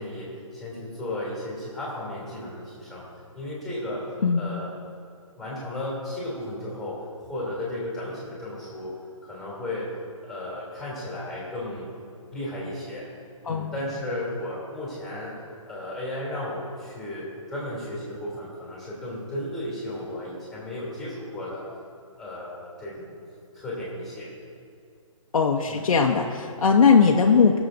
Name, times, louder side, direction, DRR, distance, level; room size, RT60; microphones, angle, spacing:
voice 1, 0.0-3.1 3.3-4.1 4.3-4.7 5.4-8.9 9.2-9.9 10.3-11.9 12.3-13.1 13.4-15.3 15.7-21.7 22.2-23.1 23.5-24.3 25.7-25.9, left 1 dB, ahead, -6 dB, 2.9 m, -34 dB
voice 2, 25.3-27.6, left 5 dB, 75° left, 1 dB, 0.8 m, -19 dB
21.5 x 7.3 x 2.6 m, 2.5 s
hypercardioid pair, 155°, 18 cm